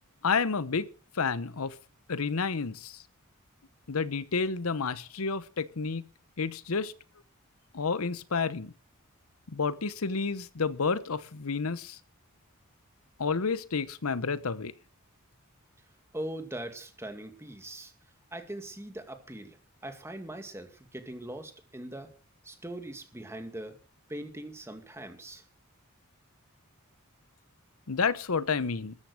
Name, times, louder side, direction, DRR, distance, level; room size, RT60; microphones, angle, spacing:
voice 1, 0.2-0.9 1.1-1.8 2.1-3.0 3.9-6.1 6.4-6.9 7.7-8.7 9.5-12.0 13.2-14.7 27.9-28.9, left 5 dB, 80° left, 0.9 m, -30 dB
voice 2, 16.1-17.9 18.3-19.6 19.8-22.1 22.4-23.8 24.1-25.4, right 1 dB, 10° right, 2.2 m, -41 dB
14.0 x 9.5 x 6.4 m
head